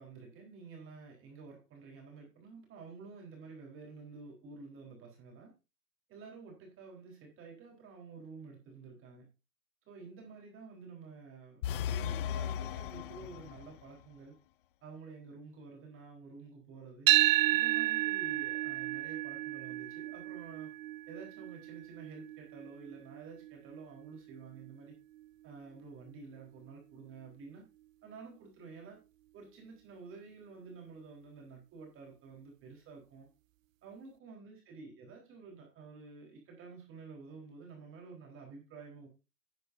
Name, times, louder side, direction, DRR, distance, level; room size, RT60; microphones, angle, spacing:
voice 1, 0.0-5.5 6.1-9.3 9.9-14.3 14.8-17.1 17.5-20.7 21.1-24.9 25.4-27.6 28.0-29.0 29.3-33.3 33.8-39.1, right 4 dB, 25° right, 4.1 m, -50 dB
sound 1, 11.6-13.9, left 9 dB, 35° left, 0.5 m, -36 dB
sound 2, 17.1-25.2, right 16 dB, 55° right, 0.6 m, -32 dB
11.5 x 9.9 x 2.6 m
hypercardioid pair, 120°, 48 cm